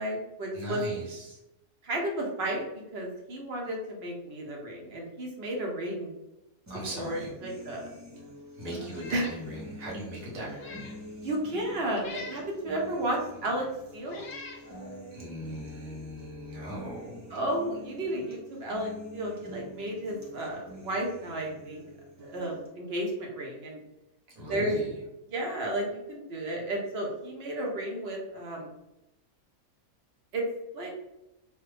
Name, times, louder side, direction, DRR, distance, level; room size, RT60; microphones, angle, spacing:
voice 1, 0.0-0.8 1.8-6.1 7.0-7.9 9.1-9.3 11.2-13.7 13.9-14.3 17.3-21.8 22.2-23.8 24.5-24.7 25.3-28.7 30.3-30.4 30.7-30.9, right 1 dB, 55° right, -1 dB, 0.8 m, -33 dB
voice 2, 0.5-1.4 6.7-7.3 8.5-10.9 15.1-17.4 24.3-24.9, equal, 75° right, -4 dB, 1.5 m, -39 dB
sound 1, 6.7-22.7, equal, 25° right, 0.4 m, -46 dB
Meow, 8.9-9.4 9.8-9.9 10.5-11.0 12.0-12.5 13.4-13.5 14.1-14.6, left 4 dB, 60° left, 0.5 m, -44 dB
3.1 x 2.2 x 3.2 m, 0.92 s
omnidirectional pair, 1.4 m